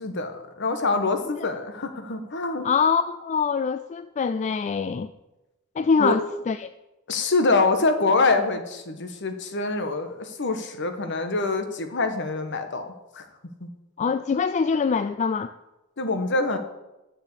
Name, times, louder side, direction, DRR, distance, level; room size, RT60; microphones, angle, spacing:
voice 1, 0.0-2.7 6.0-6.2 7.1-13.2 13.6-13.7 16.0-16.6, left 3 dB, 60° left, 7 dB, 1.2 m, -25 dB
voice 2, 2.6-5.1 5.8-6.2 6.5-6.7 14.0-15.5, left 5 dB, 35° left, 12 dB, 0.3 m, -24 dB
7.6 x 6.8 x 8.1 m, 0.98 s
head